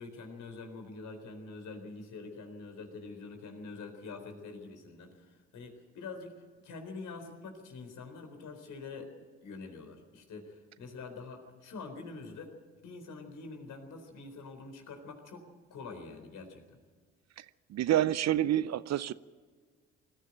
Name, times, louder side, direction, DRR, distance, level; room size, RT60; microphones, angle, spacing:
voice 1, 0.0-9.1 9.4-12.5 12.8-16.8, left 3 dB, 60° left, 4 dB, 4.1 m, -45 dB
voice 2, 17.4-19.1, right 12 dB, 50° right, 18 dB, 0.7 m, -28 dB
20.5 x 14.5 x 8.9 m, 1.5 s
hypercardioid pair, 50°, 35 cm